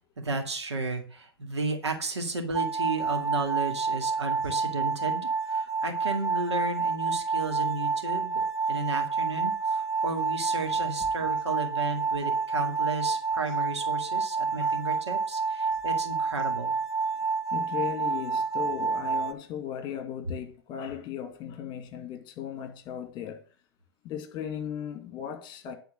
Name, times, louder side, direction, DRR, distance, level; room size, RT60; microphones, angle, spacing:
voice 1, 0.2-16.7, right 3 dB, 80° right, 2.1 m, -33 dB
sound 1, 2.5-19.3, right 4 dB, 20° right, 0.8 m, -29 dB
voice 2, 17.5-23.4 24.0-25.8, left 9 dB, 35° left, 2.0 m, -37 dB
10.5 x 4.4 x 7.5 m
figure-of-eight pair, 105°, 14 cm